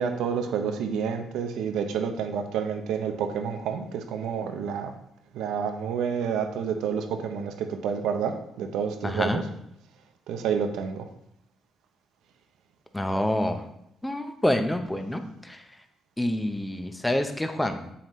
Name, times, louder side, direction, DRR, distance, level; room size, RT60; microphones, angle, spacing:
voice 1, 0.0-4.9 5.3-9.5 10.3-11.1, right 7 dB, 90° right, 6 dB, 0.7 m, -29 dB
voice 2, 9.0-9.4 12.9-13.6 14.0-15.6 16.2-17.9, left 1 dB, 10° left, 7 dB, 0.7 m, -27 dB
7.1 x 5.6 x 3.1 m, 0.77 s
cardioid pair, 90°, 0 cm